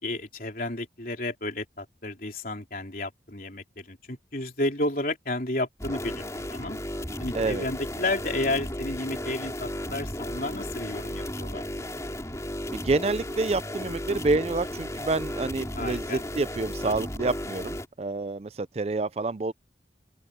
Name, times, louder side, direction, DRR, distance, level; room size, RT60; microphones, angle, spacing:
voice 1, 0.0-6.8 7.2-11.7 15.7-16.2, left 2 dB, 50° left, 3.8 m, -32 dB
sound 1, 5.8-17.9, left 1 dB, 15° left, 3.9 m, -34 dB
voice 2, 12.7-19.5, right 3 dB, 35° right, 0.4 m, -28 dB
head